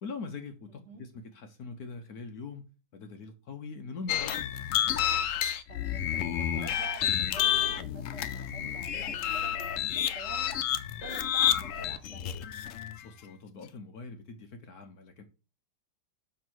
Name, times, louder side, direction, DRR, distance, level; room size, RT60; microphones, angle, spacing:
voice 1, 0.0-2.7 2.9-4.6 13.0-15.2, left 4 dB, 60° left, 1.2 m, -42 dB
voice 2, 0.7-1.0 5.7-10.5 11.0-12.3, right 4 dB, 40° right, 1.5 m, -48 dB
sound 1, 4.1-13.0, left 10 dB, 90° left, 0.7 m, -30 dB
7.3 x 3.0 x 6.1 m
omnidirectional pair, 2.0 m